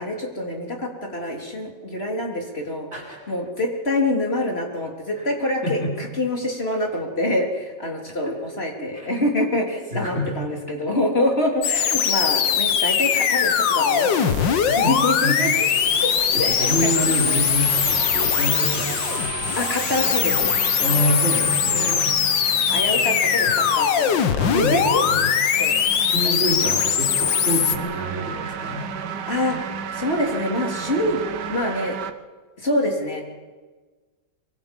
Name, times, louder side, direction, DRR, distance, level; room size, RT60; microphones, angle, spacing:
voice 1, 0.0-2.9 3.3-15.7 16.4-16.8 19.6-20.5 21.7-22.1 22.7-24.1 24.4-25.0 25.6-25.7 26.1-26.3 26.6-26.8 29.3-29.6 29.9-31.2 31.5-32.0 32.6-33.2, left 1 dB, 35° left, 0 dB, 3.6 m, -26 dB
voice 2, 5.6-5.9 8.1-8.3 8.9-9.3 9.9-10.4 11.7-11.8 14.7-15.0 15.2-15.4 16.3-19.3 20.8-22.0 23.4-23.9 24.4-25.3 26.1-28.9, equal, 35° right, -2 dB, 4.7 m, -27 dB
sound 1, 11.6-27.8, left 8 dB, 80° left, 1.8 m, -21 dB
sound 2, 13.9-32.1, right 7 dB, 70° right, 1.5 m, -34 dB
24.0 x 24.0 x 5.4 m, 1.3 s
omnidirectional pair, 2.0 m